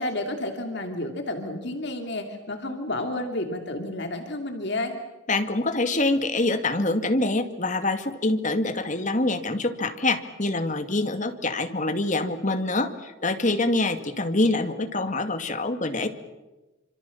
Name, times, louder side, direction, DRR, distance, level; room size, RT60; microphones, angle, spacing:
voice 1, 0.0-4.9, left 1 dB, 55° left, 4 dB, 2.8 m, -31 dB
voice 2, 5.3-16.1, left 2 dB, 35° left, 7 dB, 2.3 m, -25 dB
27.0 x 26.5 x 7.3 m, 1.1 s
head